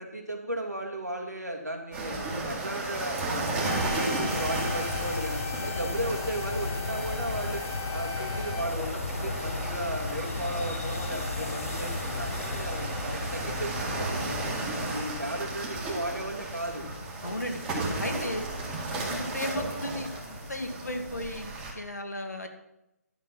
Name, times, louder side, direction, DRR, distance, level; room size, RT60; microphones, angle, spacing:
voice 1, 0.0-2.2 2.4-7.6 7.9-14.6 14.9-16.8, right 1 dB, 90° right, 1 dB, 2.5 m, -35 dB
sound 1, 1.9-21.7, right 2 dB, 15° right, 2.0 m, -34 dB
sound 2, 3.6-8.6, left 7 dB, 15° left, 1.6 m, -40 dB
sound 3, 4.3-21.1, left 3 dB, 55° left, 1.0 m, -36 dB
voice 2, 17.2-18.5 18.9-22.5, left 1 dB, 85° left, 4 dB, 2.0 m, -35 dB
11.5 x 6.5 x 6.2 m, 0.89 s
figure-of-eight pair, 140°, 9 cm